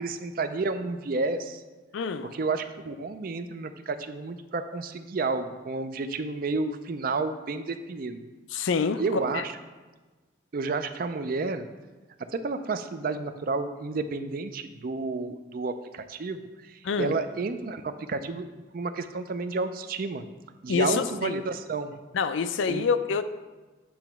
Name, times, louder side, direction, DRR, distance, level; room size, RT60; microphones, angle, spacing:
voice 1, 0.0-1.6 2.3-8.2 9.0-9.5 10.5-11.7 12.3-18.5 18.7-20.2 20.6-21.9 22.7-22.9, right 3 dB, 50° right, 0.4 m, -31 dB
voice 2, 1.9-2.3 8.5-9.0 9.3-9.4 16.8-17.1 20.7-21.4 22.1-23.2, left 5 dB, 80° left, 0.4 m, -27 dB
8.5 x 3.0 x 5.8 m
head